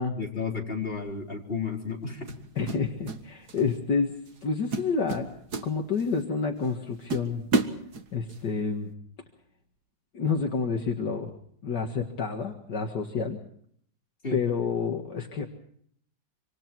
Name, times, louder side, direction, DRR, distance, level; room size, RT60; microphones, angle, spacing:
voice 1, 0.1-2.4 14.2-14.4, left 5 dB, 30° left, 0 dB, 4.5 m, -32 dB
sound 1, 0.9-1.2 2.3-3.2 3.5-3.8 4.3-4.4 4.7-6.2 6.6-6.7 7.1-8.4, right 3 dB, 55° right, 2.2 m, -30 dB
voice 2, 2.6-5.3 5.6-7.4 8.1-8.9 10.1-11.3 11.6-13.4 14.3-15.5, left 5 dB, 65° left, 2 dB, 2.4 m, -29 dB
26.5 x 26.0 x 4.6 m, 0.64 s
omnidirectional pair, 2.0 m